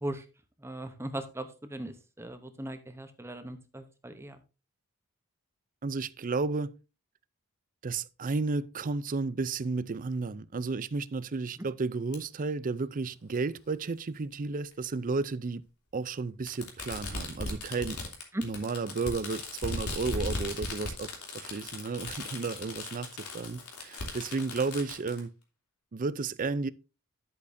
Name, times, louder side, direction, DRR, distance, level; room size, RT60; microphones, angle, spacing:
voice 1, 0.6-4.4 18.3-18.4, right 1 dB, 10° right, 0.8 m, -38 dB
voice 2, 5.8-6.7 7.8-15.6 15.9-18.0 18.4-21.1 21.3-23.1 23.3-25.3 25.9-26.7, right 4 dB, 35° right, 0.5 m, -32 dB
Fireworks, 12.1-12.2 13.4-13.5 14.7-14.8 16.5-25.2, left 2 dB, 85° left, 3.0 m, -38 dB
10.5 x 8.4 x 2.7 m
head